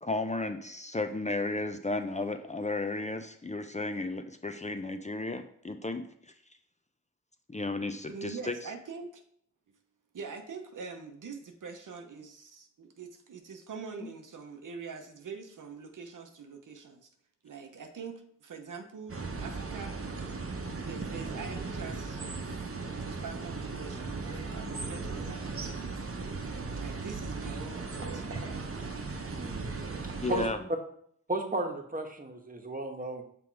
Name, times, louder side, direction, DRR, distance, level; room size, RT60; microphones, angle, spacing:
voice 1, 0.0-6.1 7.5-8.5 30.2-30.6, left 2 dB, 20° left, 7 dB, 0.6 m, -33 dB
voice 2, 8.1-9.2 10.1-17.1 17.4-20.0 20.8-26.0 26.8-28.2, right 5 dB, 70° right, 5 dB, 0.9 m, -44 dB
sound 1, 19.1-30.5, right 3 dB, 45° right, 1.0 m, -37 dB
voice 3, 29.9-30.5 31.3-33.2, right 2 dB, 25° right, 3 dB, 1.2 m, -34 dB
6.0 x 3.5 x 4.6 m, 0.65 s
cardioid pair, 40°, 32 cm